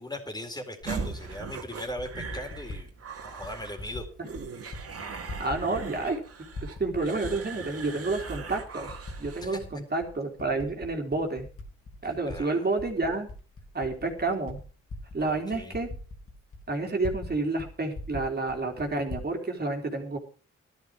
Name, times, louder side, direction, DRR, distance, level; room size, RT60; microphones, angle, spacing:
voice 1, 0.0-2.9 3.2-4.1 9.4-9.6 12.0-12.7 15.2-15.8, left 1 dB, 15° left, 5 dB, 4.1 m, -39 dB
Typing, 0.8-0.9 1.8-2.8 3.4-4.1 4.3-4.8 5.1-6.2 6.5-7.7 8.2-8.3 8.9-9.7 10.0-12.4 12.7-17.3 17.6-17.7 17.9-19.3, left 2 dB, 50° left, 3.7 m, -41 dB
sound 1, 0.9-9.5, right 5 dB, 55° right, 2.8 m, -40 dB
voice 2, 5.4-6.2 6.6-8.9 9.2-11.5 12.0-13.3 13.7-14.6 15.1-15.9 16.7-20.2, right 3 dB, 35° right, 2 dB, 3.6 m, -29 dB
14.0 x 12.5 x 4.8 m, 0.39 s
supercardioid pair, 65°, 29 cm